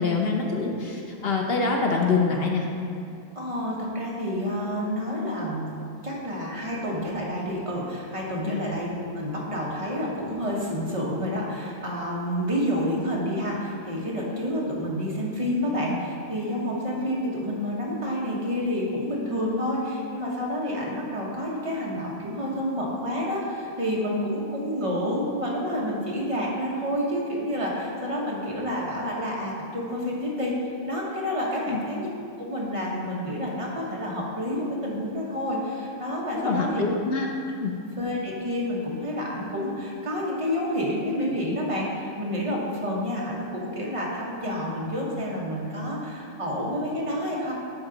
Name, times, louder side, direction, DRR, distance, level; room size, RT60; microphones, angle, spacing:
voice 1, 0.0-2.7 8.5-8.6 31.7-31.8 36.4-37.3 37.6-37.8, left 4 dB, 55° left, 0 dB, 0.7 m, -25 dB
voice 2, 3.3-5.7 6.0-30.5 30.8-32.1 32.4-36.9 38.0-47.5, equal, 25° right, -4 dB, 1.0 m, -29 dB
10.5 x 4.0 x 3.9 m, 2.5 s
omnidirectional pair, 1.5 m